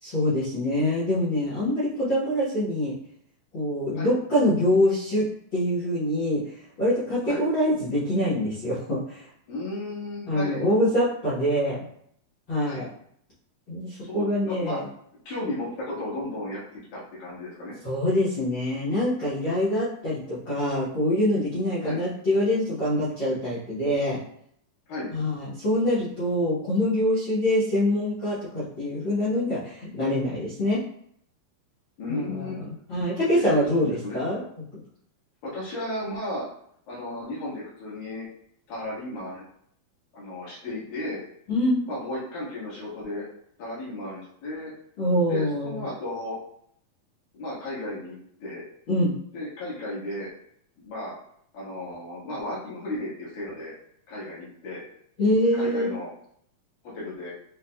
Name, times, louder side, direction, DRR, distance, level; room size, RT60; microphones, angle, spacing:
voice 1, 0.0-2.9 3.5-5.3 5.5-6.4 6.8-9.2 10.3-11.8 12.5-12.8 13.7-14.8 17.8-24.2 25.1-30.8 32.1-34.4 41.5-41.8 45.0-45.8 48.9-49.1 55.2-55.9, left 1 dB, 60° left, -10 dB, 1.2 m, -25 dB
voice 2, 9.5-10.6 12.6-12.8 14.0-14.8 15.3-17.7 21.8-22.0 24.9-25.1 32.0-32.7 33.2-34.2 35.4-36.5 36.9-38.3 38.7-39.4 40.1-41.2 41.9-43.3 43.6-44.7 45.3-46.4 47.3-48.6 49.3-50.3 50.8-51.1 51.5-53.7 54.1-54.8 55.5-56.1 56.9-57.3, left 1 dB, 75° left, -7 dB, 3.3 m, -34 dB
7.1 x 2.5 x 2.3 m, 0.67 s
omnidirectional pair, 4.0 m